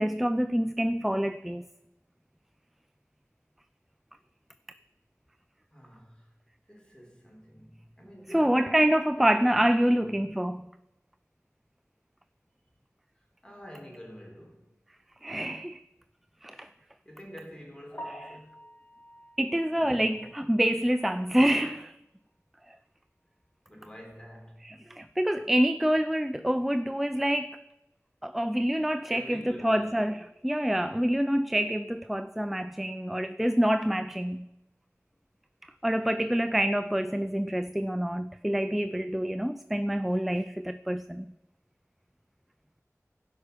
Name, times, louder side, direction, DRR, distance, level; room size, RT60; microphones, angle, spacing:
voice 1, 0.0-1.7 8.3-10.7 15.2-15.8 16.4-16.7 19.4-22.0 22.7-22.8 24.6-27.6 28.2-34.5 35.8-41.3, equal, 5° right, 0.4 m, -27 dB
voice 2, 5.7-6.3 6.7-8.8 9.2-10.2 13.2-14.7 17.0-18.6 19.7-20.3 23.7-24.7 29.1-30.3, equal, 15° left, 3.9 m, -48 dB
Piano, 18.0-21.9 22.3-22.4 22.9-23.0 23.4-23.5 26.5-26.6 35.1-35.4, equal, 40° left, 1.0 m, -49 dB
16.5 x 5.6 x 6.7 m
wide cardioid pair, 40°, 6 cm